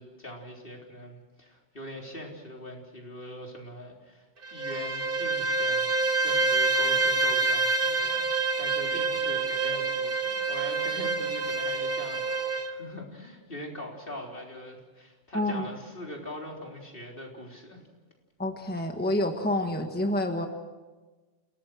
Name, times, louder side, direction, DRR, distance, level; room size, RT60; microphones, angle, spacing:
voice 1, 0.0-8.3 8.6-17.8, left 1 dB, 55° left, 0 dB, 4.0 m, -42 dB
Bowed string instrument, 4.4-12.7, right 3 dB, 55° right, 1.6 m, -27 dB
voice 2, 15.3-15.7 18.4-20.5, left 1 dB, 10° left, 4 dB, 1.5 m, -28 dB
29.5 x 17.5 x 6.2 m, 1.3 s
omnidirectional pair, 1.1 m